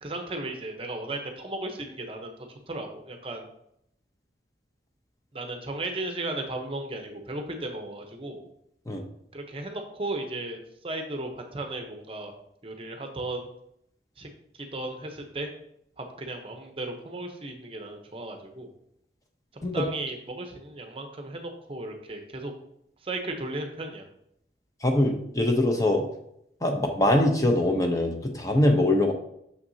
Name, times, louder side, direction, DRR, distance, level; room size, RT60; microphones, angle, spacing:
voice 1, 0.0-2.3 2.7-3.5 5.3-8.4 9.3-12.3 12.6-13.5 14.2-14.3 14.5-15.5 16.0-18.7 19.7-22.5 23.0-24.0, right 2 dB, 30° right, 4 dB, 0.7 m, -35 dB
voice 2, 24.8-26.0 26.6-29.1, left 1 dB, 20° left, 3 dB, 0.6 m, -23 dB
6.4 x 5.8 x 2.7 m, 0.75 s
head